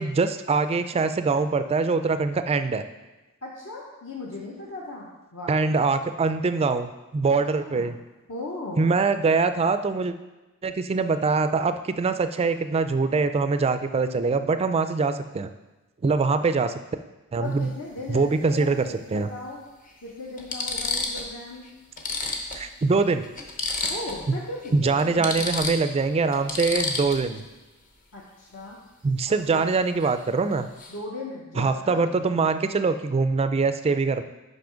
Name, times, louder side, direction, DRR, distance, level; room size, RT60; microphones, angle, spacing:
voice 1, 0.0-2.8 5.5-8.0 8.8-10.1 10.6-15.5 16.0-16.7 17.3-17.7 18.1-19.3 22.6-23.2 24.3-24.4 24.7-27.4 29.0-30.7 31.6-34.2, right 4 dB, 30° right, 10 dB, 0.3 m, -23 dB
voice 2, 3.4-5.8 7.2-7.3 7.6-8.0 8.3-8.9 17.4-19.6 20.0-21.7 23.9-25.4 28.1-28.8 29.3-29.7 30.9-32.0, left 2 dB, 65° left, -3 dB, 0.9 m, -37 dB
sound 1, 17.4-17.6 19.1-19.2 19.9-20.0 20.4-21.3 21.6-21.7 22.0-24.3 24.6-24.7 25.0-27.4 30.0-30.2 30.5-31.0, left 3 dB, 40° left, 0.9 m, -31 dB
5.9 x 5.5 x 5.1 m, 1.1 s
head